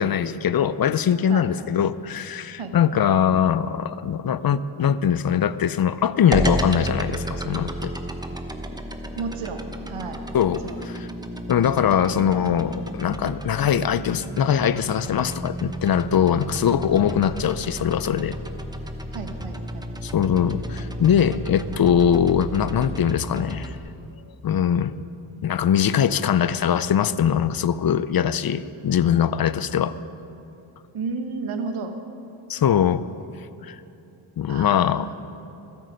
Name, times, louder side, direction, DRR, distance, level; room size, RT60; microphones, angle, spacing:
voice 1, 0.0-7.9 10.3-11.1 11.5-18.3 20.0-23.8 24.4-24.9 25.4-30.0 32.5-33.0 33.6-33.8 34.4-35.1, left 8 dB, 50° left, 15 dB, 0.5 m, -22 dB
sound 1, 6.3-23.8, right 1 dB, 10° right, 0.9 m, -32 dB
voice 2, 9.2-10.2 10.6-10.8 19.1-19.9 30.9-32.0 34.5-35.1, right 4 dB, 80° right, 6 dB, 1.3 m, -32 dB
20.0 x 8.3 x 5.2 m, 2.8 s
cardioid pair, 70°, 49 cm